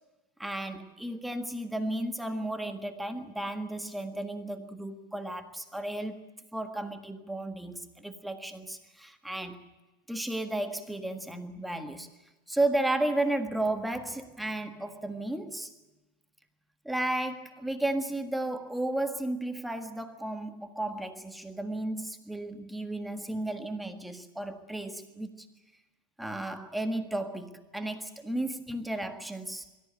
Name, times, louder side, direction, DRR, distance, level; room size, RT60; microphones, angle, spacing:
voice 1, 0.4-6.3 6.5-9.6 10.1-12.1 12.5-15.7 16.8-25.5 26.2-29.6, right 1 dB, 5° right, 8 dB, 1.6 m, -33 dB
23.0 x 14.0 x 10.0 m, 1.1 s
figure-of-eight pair, 90°, 0 cm